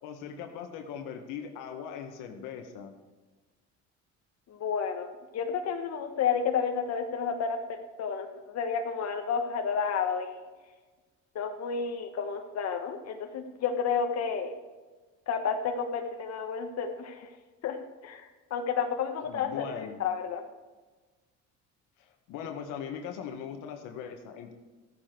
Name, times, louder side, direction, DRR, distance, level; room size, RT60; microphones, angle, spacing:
voice 1, 0.0-2.9 19.2-20.0 22.0-24.5, left 8 dB, 90° left, 4 dB, 1.7 m, -40 dB
voice 2, 4.5-10.4 11.3-14.5 15.3-17.3 17.6-17.8 18.0-20.4, left 6 dB, 55° left, 5 dB, 1.3 m, -31 dB
14.5 x 9.6 x 4.6 m, 1.3 s
cardioid pair, 100°, 31 cm